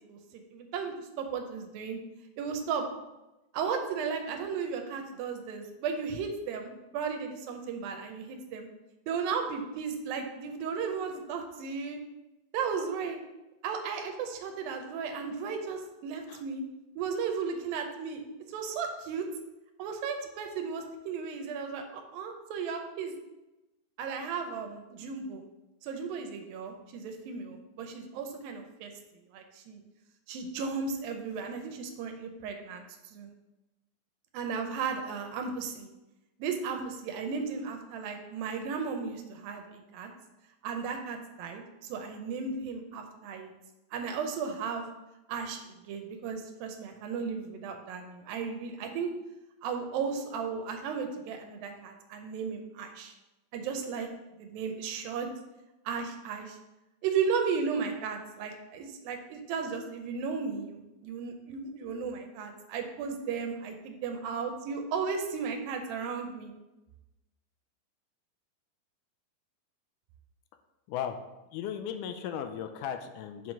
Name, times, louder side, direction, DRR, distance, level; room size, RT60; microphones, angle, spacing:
voice 1, 0.0-2.0 2.4-2.9 3.5-8.7 9.1-12.0 12.5-13.2 13.6-16.6 17.0-18.2 18.5-19.3 19.8-23.1 24.0-25.4 25.8-28.9 29.3-29.8 30.3-32.8 33.1-33.3 34.3-35.9 36.4-39.6 39.9-40.1 40.6-43.5 43.9-44.9 45.3-49.1 49.6-53.1 53.5-54.1 54.4-55.3 55.9-56.6 57.0-66.5, right 5 dB, 85° right, 4 dB, 2.5 m, -35 dB
voice 2, 71.5-73.5, left 9 dB, 80° left, 7 dB, 1.9 m, -36 dB
5.8 x 4.7 x 5.2 m, 1.0 s
omnidirectional pair, 4.0 m